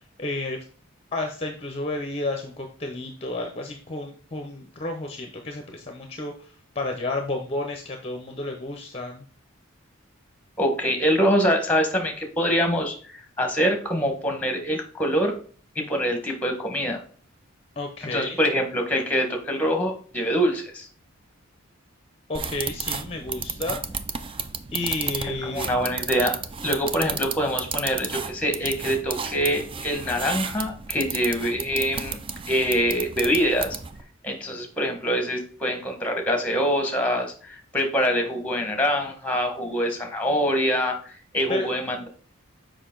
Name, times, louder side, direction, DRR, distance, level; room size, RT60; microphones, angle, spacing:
voice 1, 0.2-0.6 1.1-9.2 17.8-18.4 22.3-23.8 24.7-25.7 41.5-41.7, left 2 dB, 30° left, 4 dB, 0.7 m, -31 dB
voice 2, 10.6-15.3 15.7-17.0 18.1-20.9 25.4-32.2 32.5-33.8 34.2-42.1, equal, 5° left, 3 dB, 1.3 m, -25 dB
sound 1, 22.3-34.0, right 6 dB, 25° right, 0.4 m, -33 dB
6.6 x 5.0 x 3.8 m, 0.43 s
head